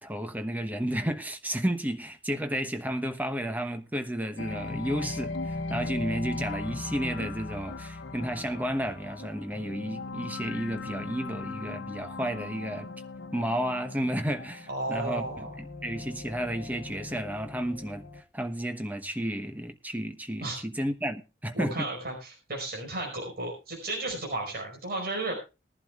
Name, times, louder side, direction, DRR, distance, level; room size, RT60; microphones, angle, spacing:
voice 1, 0.0-12.9 13.3-21.9, equal, 10° right, 1.1 m, -32 dB
sound 1, 4.4-18.2, left 3 dB, 65° left, 1.2 m, -38 dB
voice 2, 14.7-15.5 20.4-20.6 21.5-25.3, right 2 dB, 50° right, 5.1 m, -33 dB
20.0 x 11.5 x 2.4 m
head